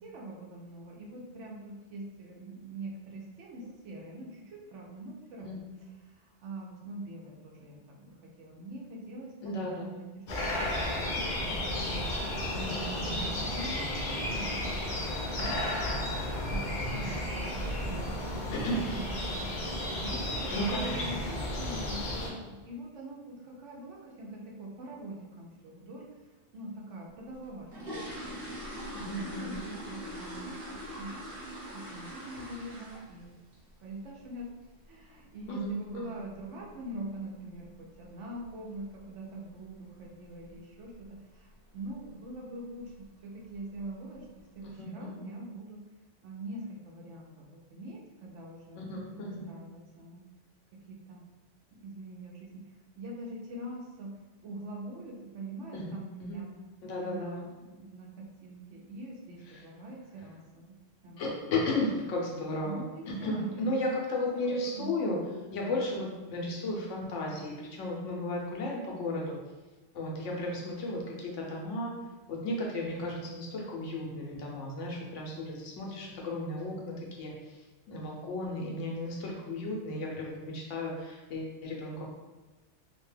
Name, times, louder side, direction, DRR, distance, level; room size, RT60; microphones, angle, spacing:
voice 1, 0.0-5.6 6.1-11.2 11.8-12.4 12.6-15.6 16.5-18.4 18.8-19.5 20.0-26.1 26.5-28.4 29.2-30.5 30.9-31.1 31.7-33.4 33.8-34.5 34.8-44.3 44.5-45.8 46.2-50.2 50.9-51.2 51.7-52.5 53.0-54.1 54.4-56.5 57.0-60.7 61.0-61.2 62.6-64.0 64.3-64.9, right 1 dB, 80° right, -2 dB, 1.0 m, -44 dB
voice 2, 9.4-9.8 12.5-13.1 18.5-18.9 20.5-21.2 28.9-29.6 35.5-35.8 36.1-36.2 44.6-45.2 48.8-49.5 55.7-55.9 56.2-56.4 56.8-57.4 61.2-65.2 65.5-69.4 69.9-72.0 72.3-77.3 77.9-82.0, left 1 dB, 85° left, -1 dB, 1.0 m, -34 dB
sound 1, 10.3-22.3, left 1 dB, 55° left, 0.7 m, -33 dB
sound 2, 27.3-33.3 33.5-33.8 34.2-34.3 34.6-34.8 35.2-35.4 35.6-35.7 36.3-36.4 36.7-36.8 37.3-37.7 37.9-38.0 38.4-38.6 39.0-39.1 39.5-39.6 40.2-40.5 40.8-41.1 41.5-41.6 42.0-42.1 42.9-43.0 43.4-43.9 44.4-44.5, equal, 55° right, 1.1 m, -42 dB
2.8 x 2.2 x 3.2 m, 1.2 s
omnidirectional pair, 1.2 m